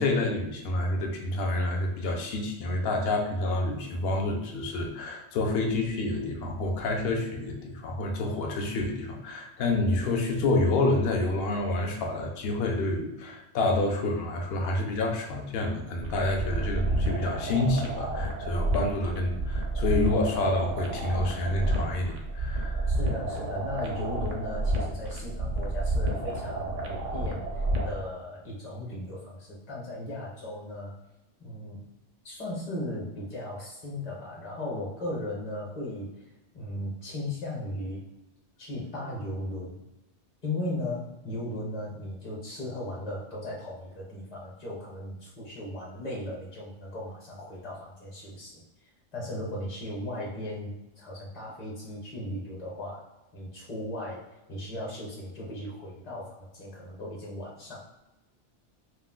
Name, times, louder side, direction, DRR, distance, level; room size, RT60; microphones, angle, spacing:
voice 1, 0.0-22.9, left 2 dB, 65° left, 2 dB, 0.8 m, -28 dB
sound 1, 16.0-28.0, right 1 dB, 55° right, 0.5 m, -30 dB
voice 2, 22.9-31.0 31.4-31.8 32.2-36.1 36.5-38.0 38.6-39.8 40.4-48.6 49.1-53.1 53.3-54.2 54.5-57.8, left 1 dB, 35° left, -4 dB, 0.8 m, -37 dB
2.4 x 2.2 x 3.6 m, 0.97 s
omnidirectional pair, 1.2 m